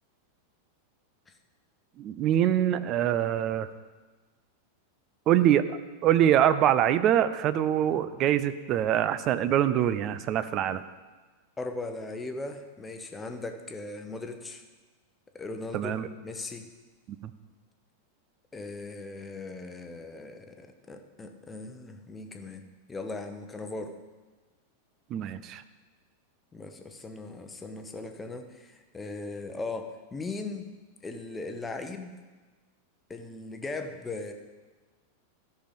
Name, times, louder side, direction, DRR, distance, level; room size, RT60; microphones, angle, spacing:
voice 1, 2.0-3.7 5.3-10.8 15.7-16.1 17.2-17.3 25.1-25.6, right 11 dB, 35° right, 13 dB, 0.5 m, -24 dB
voice 2, 11.6-14.6 15.3-15.9 16.2-16.7 18.5-22.6 22.9-23.9 26.5-30.7 31.0-32.1 33.1-34.3, left 3 dB, 15° left, 5 dB, 1.0 m, -38 dB
13.5 x 5.7 x 5.3 m, 1.3 s
figure-of-eight pair, 90°, 0 cm